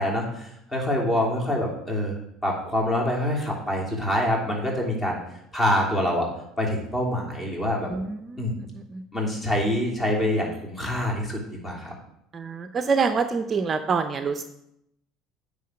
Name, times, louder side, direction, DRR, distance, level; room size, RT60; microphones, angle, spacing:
voice 1, 0.0-5.2 5.5-6.3 6.6-7.9 8.4-8.5 9.1-11.9, left 1 dB, 20° left, -2 dB, 3.2 m, -26 dB
voice 2, 12.3-14.4, right 5 dB, 35° right, 9 dB, 0.6 m, -25 dB
9.3 x 3.8 x 6.3 m, 0.78 s
hypercardioid pair, 65°, 0 cm